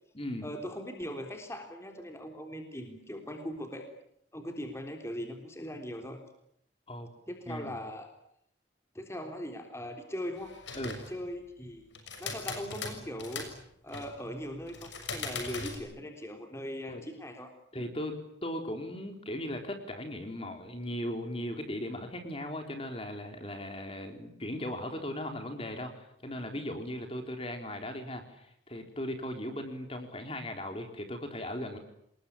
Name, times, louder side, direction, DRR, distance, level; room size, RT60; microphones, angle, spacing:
voice 1, 0.4-3.9 4.3-6.2 7.3-8.1 8.9-10.6 10.8-11.9 12.2-13.5 13.8-17.5, equal, 15° left, 4 dB, 3.6 m, -40 dB
sound 1, 10.4-11.2 11.9-13.5 13.9-14.2 14.7-15.8, left 4 dB, 90° left, 6.7 m, -39 dB
voice 2, 17.7-31.8, left 1 dB, 30° left, 5 dB, 3.9 m, -38 dB
28.0 x 21.0 x 10.0 m, 0.74 s
head